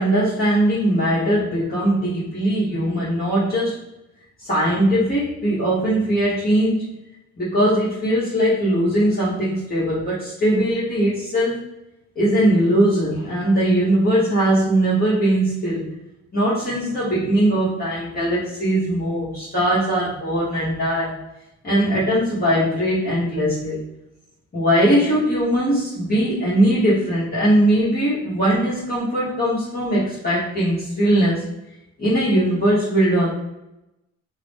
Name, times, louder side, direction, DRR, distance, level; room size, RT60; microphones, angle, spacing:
voice 1, 0.0-3.8 4.4-6.9 7.4-11.6 12.1-15.8 16.3-21.1 21.6-23.8 24.5-31.4 32.0-33.3, right 1 dB, 30° left, -10 dB, 1.1 m, -20 dB
2.9 x 2.0 x 3.3 m, 0.91 s
cardioid pair, 90°, 30 cm